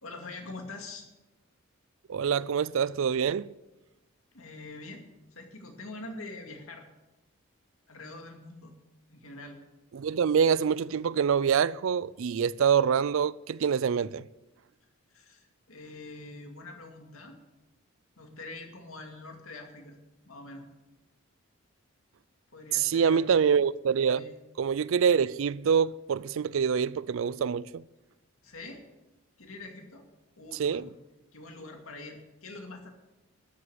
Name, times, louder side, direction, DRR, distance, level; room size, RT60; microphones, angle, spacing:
voice 1, 0.0-1.1 4.3-6.9 7.9-8.7 9.1-9.6 15.1-17.4 18.2-20.0 20.2-20.7 22.5-23.3 24.1-24.3 28.4-28.9 29.4-30.1 30.4-30.9 31.3-32.9, left 2 dB, 75° left, 2.3 m, -44 dB
voice 2, 2.1-3.5 9.9-14.2 22.7-24.2 24.6-27.9 30.6-30.9, right 7 dB, 65° right, 0.4 m, -25 dB
13.0 x 8.1 x 8.0 m
head